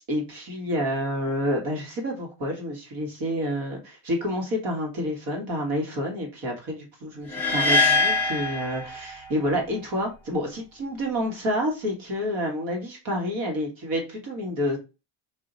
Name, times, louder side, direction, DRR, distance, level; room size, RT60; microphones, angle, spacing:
voice 1, 0.1-14.8, equal, 50° right, 0 dB, 1.5 m, -29 dB
sound 1, 7.3-9.5, left 3 dB, 5° left, 0.3 m, -23 dB
3.0 x 2.7 x 3.9 m, 0.28 s
cardioid pair, 165°, 43 cm